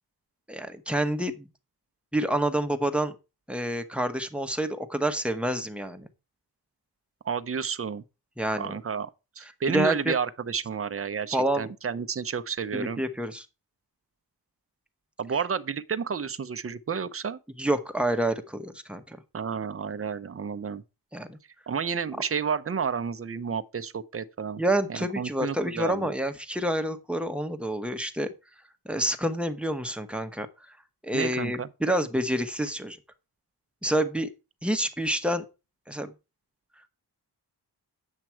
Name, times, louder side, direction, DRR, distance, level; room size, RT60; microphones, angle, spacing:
voice 1, 0.5-1.5 2.1-3.1 3.5-6.1 8.4-8.7 9.7-10.1 11.3-11.7 12.7-13.5 17.6-19.2 21.1-21.4 24.6-28.3 28.8-30.8 31.0-33.0 33.8-34.3 34.6-35.4 35.9-36.1, right 1 dB, 5° right, 1.0 m, -28 dB
voice 2, 7.2-8.0 8.5-9.1 9.4-13.0 15.2-17.4 19.3-20.8 21.7-24.6 24.9-26.1 31.1-31.7, right 6 dB, 35° right, 0.6 m, -31 dB
8.8 x 7.4 x 4.5 m
wide cardioid pair, 160°, 39 cm